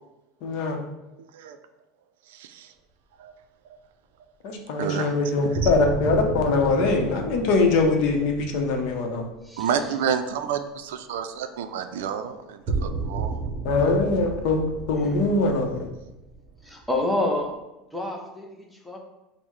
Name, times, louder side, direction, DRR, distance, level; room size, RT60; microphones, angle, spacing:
voice 1, 0.4-0.8 4.4-9.2 13.6-15.9, left 3 dB, 60° left, 3 dB, 0.7 m, -22 dB
voice 2, 1.2-1.6 2.3-2.7 3.2-3.3 4.8-5.7 9.6-13.5, right 8 dB, 85° right, 8 dB, 0.3 m, -30 dB
sound 1, 5.5-9.8 12.7-17.3, right 3 dB, 35° right, 0.8 m, -33 dB
voice 3, 9.4-9.9 16.6-17.5 17.9-19.0, left 2 dB, ahead, 0 dB, 0.6 m, -28 dB
5.5 x 2.0 x 3.1 m, 0.98 s
supercardioid pair, 150°, 0 cm